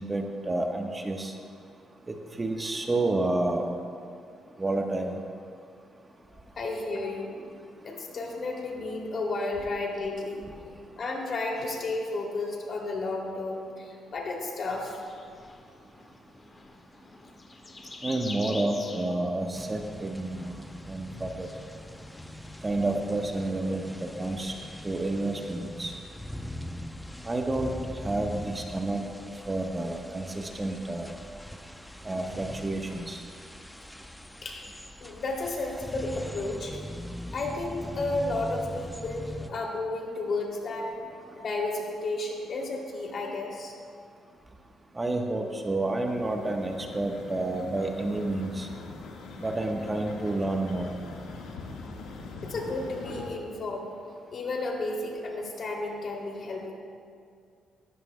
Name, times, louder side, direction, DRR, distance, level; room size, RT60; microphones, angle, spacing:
voice 1, 0.0-1.3 2.1-3.6 4.6-5.1 18.0-20.6 20.9-21.5 22.6-24.5 24.8-25.9 27.2-27.7 28.0-29.0 29.5-31.1 32.0-33.2 44.9-48.7 49.4-50.9, right 2 dB, 20° right, 2 dB, 1.1 m, -30 dB
voice 2, 6.3-7.4 7.8-14.9 34.4-34.6 35.0-36.8 37.3-40.9 41.3-43.7 52.4-53.9 54.3-56.7, left 2 dB, 50° left, 0 dB, 2.6 m, -32 dB
sound 1, 14.7-24.0, left 2 dB, 30° left, 1.3 m, -47 dB
sound 2, 19.5-39.5, left 1 dB, 5° left, 0.6 m, -42 dB
sound 3, 45.4-53.3, left 3 dB, 85° left, 1.5 m, -43 dB
18.0 x 15.0 x 2.2 m, 2.3 s
cardioid pair, 90°, 0 cm